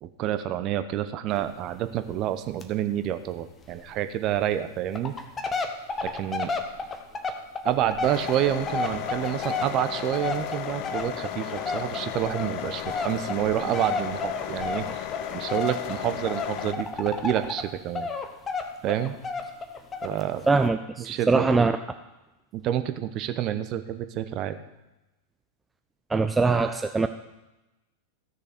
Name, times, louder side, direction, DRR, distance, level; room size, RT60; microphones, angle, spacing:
voice 1, 0.0-5.1 6.0-6.5 7.6-18.1 18.8-19.1 20.0-20.4 21.0-21.7 22.5-24.6, right 11 dB, 35° right, 10 dB, 0.8 m, -28 dB
sound 1, 1.3-1.5 1.7-1.8 2.1-2.3 2.6-2.7 3.0-3.1 3.7-3.8 4.4-4.5 4.9-17.7 17.9-20.2 20.6-20.7, left 4 dB, 20° left, 1.1 m, -32 dB
sound 2, 8.0-16.7, left 11 dB, 40° left, 0.7 m, -35 dB
voice 2, 20.5-21.7 26.1-27.1, right 3 dB, 10° right, 8 dB, 0.5 m, -22 dB
14.5 x 6.6 x 5.1 m, 0.99 s
figure-of-eight pair, 90°, 0 cm